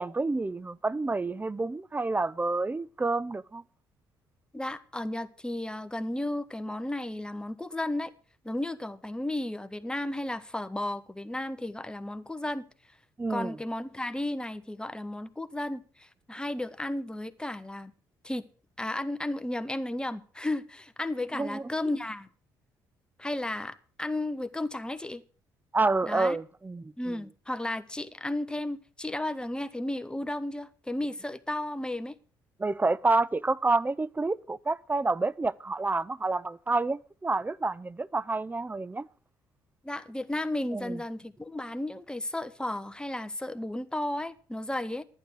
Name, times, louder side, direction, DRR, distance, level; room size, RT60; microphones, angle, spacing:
voice 1, 0.0-3.6 13.2-13.6 21.3-21.6 25.7-27.2 32.6-39.1 40.7-41.0, right 3 dB, 15° right, 0.6 m, -28 dB
voice 2, 4.5-8.1 8.4-12.7 13.3-17.9 18.2-18.4 18.8-22.3 23.2-25.2 26.0-26.4 27.0-32.2 39.8-45.0, left 1 dB, 10° left, 1.1 m, -34 dB
11.5 x 9.6 x 6.2 m
hypercardioid pair, 50°, 10 cm